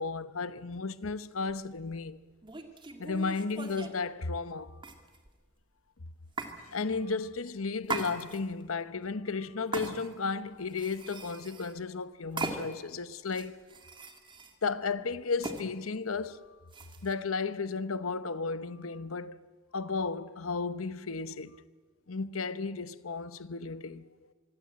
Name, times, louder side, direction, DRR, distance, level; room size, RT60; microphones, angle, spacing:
voice 1, 0.0-2.2 3.0-4.8 6.6-13.6 14.6-16.6 17.0-19.4 19.7-21.6 22.1-24.1, left 4 dB, 85° left, 0.9 m, -34 dB
sound 1, 1.5-1.7 2.4-4.0 4.8-5.4 6.4-6.6 7.8-8.6 9.7-10.3 10.7-11.8 12.4-12.9 13.3-14.5 15.4-15.6 16.7-17.1, right 3 dB, 25° right, 2.2 m, -39 dB
25.0 x 24.0 x 8.7 m
head